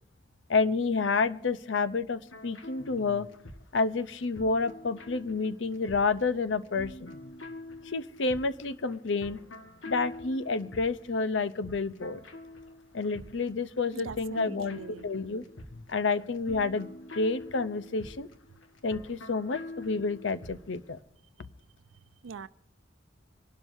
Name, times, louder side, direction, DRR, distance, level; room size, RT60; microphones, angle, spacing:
voice 1, 0.5-3.3 3.7-7.2 7.9-9.4 9.9-12.2 12.9-15.4 15.7-18.3 18.8-21.0, left 4 dB, 65° left, 15 dB, 0.6 m, -29 dB
sound 1, 2.3-20.9, left 2 dB, 80° left, 1.4 m, -47 dB
voice 2, 13.9-15.1 22.2-22.5, right 5 dB, 85° right, 15 dB, 0.5 m, -42 dB
26.0 x 12.0 x 2.7 m, 0.74 s
head